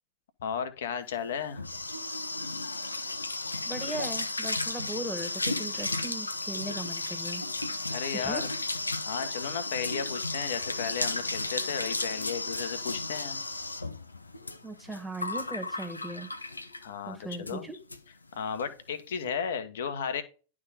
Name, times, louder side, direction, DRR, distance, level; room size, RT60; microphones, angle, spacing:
voice 1, 0.4-1.6 7.9-8.5 9.0-13.4 16.8-17.7 18.3-20.2, left 7 dB, 60° left, 10 dB, 1.2 m, -34 dB
sound 1, 1.2-16.9 17.3-17.6 17.9-18.0 18.3-18.6, left 2 dB, 80° left, 0.7 m, -34 dB
voice 2, 3.6-7.4 8.1-8.4 14.6-16.3 17.0-17.8, right 2 dB, 5° left, 8 dB, 1.7 m, -38 dB
11.0 x 3.7 x 5.0 m, 0.34 s
figure-of-eight pair, 90°, 0 cm